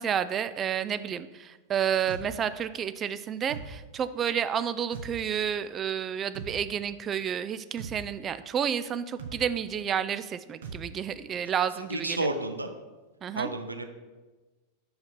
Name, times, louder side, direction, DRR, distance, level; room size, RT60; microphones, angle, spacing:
voice 1, 0.0-12.3 13.2-13.5, right 8 dB, 25° right, 13 dB, 0.3 m, -30 dB
sound 1, 2.1-2.3 3.5-3.7 4.9-5.1 6.3-6.5 7.8-8.0 9.2-9.4 10.6-10.8, right 5 dB, 60° right, 0.9 m, -39 dB
voice 2, 11.9-12.7 13.3-13.8, right 2 dB, 80° right, 7 dB, 0.6 m, -31 dB
5.7 x 5.7 x 5.6 m, 1.2 s
figure-of-eight pair, 90°, 0 cm